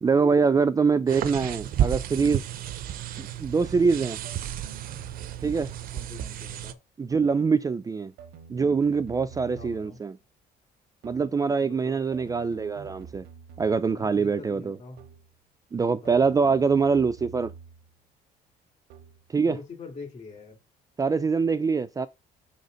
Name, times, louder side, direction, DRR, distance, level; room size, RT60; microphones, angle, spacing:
voice 1, 0.0-2.5 3.2-4.2 5.4-5.7 7.0-8.1 8.5-10.2 11.0-13.2 13.6-14.8 15.7-17.5 19.3-19.6 21.0-22.1, right 5 dB, 20° right, 0.4 m, -24 dB
sound 1, 1.1-6.7, right 11 dB, 60° right, 0.6 m, -32 dB
sound 2, 3.2-3.6 4.2-6.2 7.1-7.5 8.2-10.1 11.0-11.4 12.1-14.1 15.0-15.4 16.1-18.0 18.9-19.3, right 6 dB, 85° right, 0.9 m, -48 dB
voice 2, 5.9-6.8 9.6-10.0 11.6-12.0 13.8-15.0 15.8-16.4 19.4-20.6, left 4 dB, 40° left, 2.3 m, -45 dB
5.7 x 4.1 x 5.0 m
cardioid pair, 110°, 17 cm